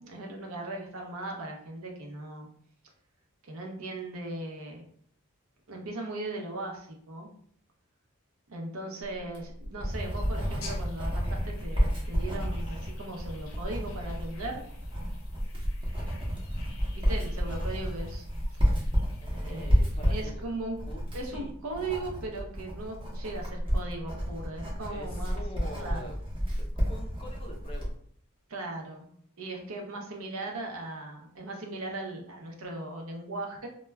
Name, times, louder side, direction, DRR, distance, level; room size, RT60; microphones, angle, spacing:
voice 1, 0.0-2.5 3.4-4.8 5.7-7.3 8.5-14.6 16.9-18.3 19.4-19.8 20.1-20.8 21.1-26.1 28.5-29.1 29.4-33.7, right 2 dB, 65° right, 1 dB, 0.6 m, -38 dB
Writing, 9.2-27.9, equal, 25° right, 0.7 m, -30 dB
sound 1, 10.0-20.2, left 4 dB, 70° left, 0.6 m, -53 dB
voice 2, 19.2-20.4 20.8-21.5 24.9-26.2 26.6-28.0, equal, 25° left, 2 dB, 0.4 m, -45 dB
2.2 x 2.1 x 3.2 m, 0.63 s
head